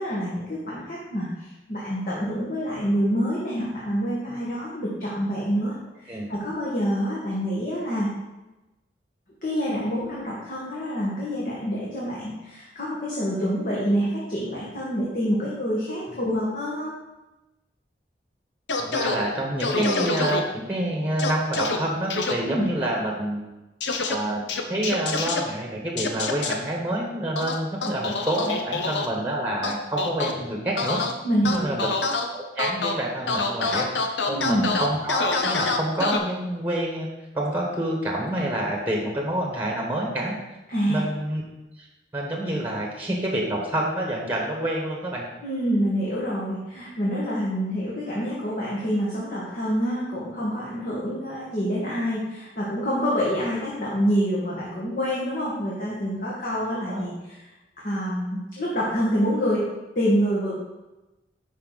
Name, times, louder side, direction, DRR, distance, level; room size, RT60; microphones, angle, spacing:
voice 1, 0.0-8.1 9.4-16.9 22.4-22.6 31.2-31.8 34.3-34.7 40.7-41.0 45.4-57.4 57.8-60.5, equal, 50° left, -6 dB, 1.7 m, -27 dB
sound 1, 18.7-19.2 19.6-20.4 21.2-21.8 22.1-22.3 23.8-24.2 24.5-25.4 26.0-26.5 27.4-29.1 29.6-30.3 30.8-31.1 31.5-32.3 32.6-32.9 33.3-36.2, left 3 dB, 85° left, 0.9 m, -26 dB
voice 2, 18.8-23.4 24.1-31.0 31.5-31.9 32.3-33.9 34.3-37.1 37.3-40.3 40.9-41.4 41.8-41.9 42.1-45.2 56.9-57.0, right 1 dB, 10° right, 0 dB, 1.3 m, -27 dB
11.0 x 4.8 x 4.1 m, 1.0 s
head